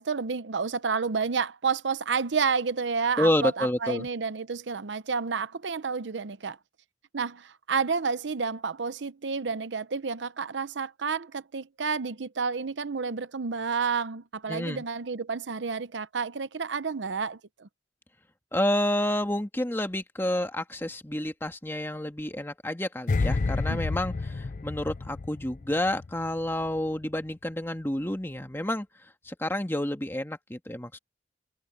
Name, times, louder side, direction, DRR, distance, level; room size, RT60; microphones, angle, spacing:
voice 1, 0.0-6.6 7.1-17.7 23.7-23.8, right 5 dB, 85° right, 0.7 m, -30 dB
voice 2, 3.2-4.1 14.5-14.8 18.5-28.9 29.2-31.0, left 1 dB, 15° left, 1.7 m, -29 dB
sound 1, 23.1-26.3 26.5-26.8, left 3 dB, 45° left, 0.5 m, -29 dB
head